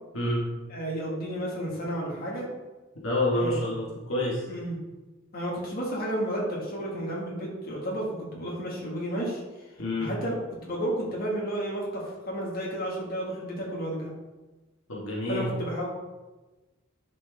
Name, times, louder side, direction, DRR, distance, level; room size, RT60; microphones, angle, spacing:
voice 1, 0.7-2.5 3.3-3.6 4.5-4.8 5.3-8.1 8.3-9.4 10.0-10.3 10.6-14.1 15.3-15.9, right 1 dB, 45° left, -4 dB, 2.0 m, -32 dB
voice 2, 3.0-4.5 9.8-10.1 14.9-15.5, left 1 dB, 70° left, -5 dB, 1.9 m, -28 dB
10.5 x 4.4 x 3.5 m, 1.1 s
head